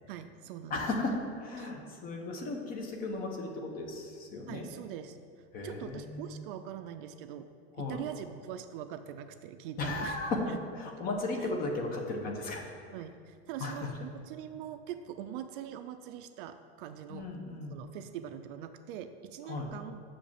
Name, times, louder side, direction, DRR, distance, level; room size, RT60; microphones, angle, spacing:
voice 1, 0.1-0.9 1.6-1.7 4.5-7.5 7.8-10.2 11.0-11.1 12.9-17.3 17.7-20.0, right 10 dB, 55° right, 9 dB, 0.5 m, -43 dB
voice 2, 0.7-4.7 5.5-6.4 7.7-8.0 9.8-12.6 13.6-13.9 17.1-17.8 19.5-19.7, left 2 dB, 25° left, 2 dB, 0.9 m, -35 dB
6.9 x 5.2 x 7.1 m, 2.2 s
supercardioid pair, 170°, 33 cm